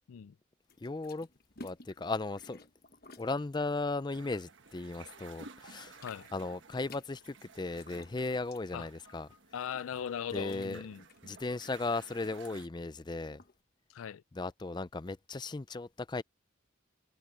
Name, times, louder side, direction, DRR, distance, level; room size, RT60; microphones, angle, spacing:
sound 1, 0.7-5.2 5.5-13.6, left 2 dB, 45° left, 1.3 m, -56 dB
voice 1, 0.8-1.3 1.6-2.6 3.2-6.0 6.3-9.3 10.3-10.8 11.2-13.4 14.3-16.2, left 3 dB, 20° left, 0.4 m, -36 dB
sound 2, 4.1-12.7, right 4 dB, 65° right, 1.3 m, -55 dB
voice 2, 9.5-11.0 13.9-14.2, left 8 dB, 85° left, 0.4 m, -39 dB
head